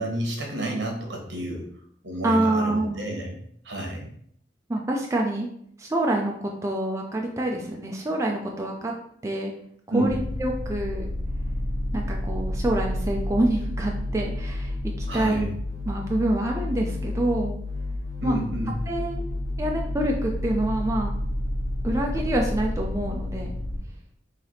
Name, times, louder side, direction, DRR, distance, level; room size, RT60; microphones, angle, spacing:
voice 1, 0.0-1.6 2.0-3.4 3.6-4.1 9.9-10.2 15.1-15.5 18.2-18.7, right 1 dB, 80° right, 1 dB, 1.1 m, -30 dB
voice 2, 2.2-3.1 4.7-5.5 5.8-8.9 9.2-9.5 9.9-11.1 11.9-15.5 15.9-17.6 18.2-18.4 18.9-19.2 19.6-21.2 21.8-23.5, right 1 dB, 15° right, 0 dB, 0.4 m, -26 dB
sound 1, 10.1-23.8, left 1 dB, 85° left, 1.1 m, -30 dB
3.3 x 2.8 x 4.2 m, 0.65 s
head